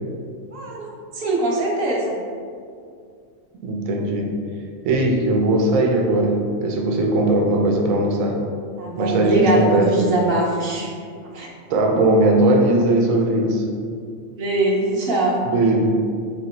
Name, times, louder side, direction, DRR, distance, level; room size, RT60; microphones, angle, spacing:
voice 1, 0.5-2.1 8.8-10.9 11.3-11.5 14.4-15.4, right 2 dB, 55° right, -4 dB, 0.8 m, -22 dB
voice 2, 3.6-4.3 4.8-8.4 9.0-9.9 11.7-13.7 15.4-15.9, right 1 dB, 85° right, 1 dB, 1.0 m, -19 dB
3.6 x 2.8 x 4.2 m, 2.3 s
omnidirectional pair, 1.4 m